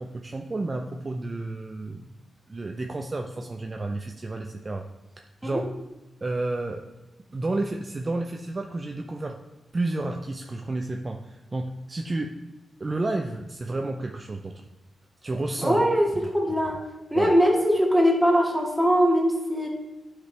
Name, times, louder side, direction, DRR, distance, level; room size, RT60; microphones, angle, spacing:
voice 1, 0.0-2.1 2.5-4.9 5.4-5.7 6.2-6.8 7.3-9.4 9.7-12.4 12.8-14.5 15.2-15.8 17.1-17.3, right 2 dB, 35° right, 3 dB, 0.5 m, -31 dB
voice 2, 15.6-16.8 17.1-19.7, equal, 5° right, -2 dB, 1.9 m, -21 dB
10.0 x 5.0 x 3.3 m, 1.1 s
cardioid pair, 80°, 0 cm